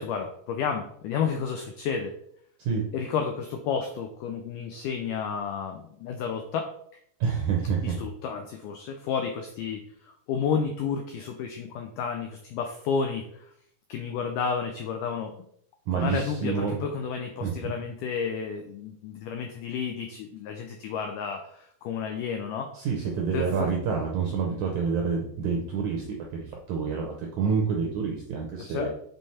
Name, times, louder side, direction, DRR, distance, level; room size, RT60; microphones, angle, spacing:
voice 1, 0.0-2.2 2.9-6.7 7.8-13.5 13.9-15.4 15.9-22.7 23.3-23.7 28.6-28.9, left 6 dB, 85° left, 4 dB, 1.8 m, -31 dB
voice 2, 7.2-8.0 15.9-16.8 17.4-17.5 22.7-28.9, right 6 dB, 75° right, 1 dB, 1.7 m, -28 dB
8.0 x 3.8 x 4.2 m, 0.67 s
omnidirectional pair, 4.5 m